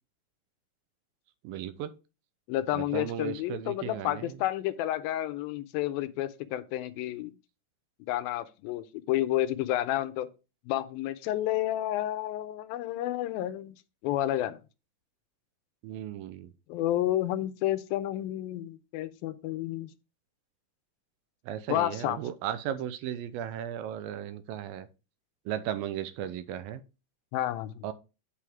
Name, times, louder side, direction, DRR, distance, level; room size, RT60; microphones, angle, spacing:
voice 1, 1.4-1.9 2.7-4.4 15.8-16.5 21.5-24.9 25.5-26.8 27.8-27.9, right 10 dB, 90° right, 2.6 m, -36 dB
voice 2, 2.5-7.3 8.1-10.3 10.7-13.8 14.0-14.6 16.7-19.9 21.7-22.2 27.3-27.8, left 14 dB, 90° left, 2.5 m, -30 dB
8.5 x 5.0 x 4.5 m
omnidirectional pair, 4.1 m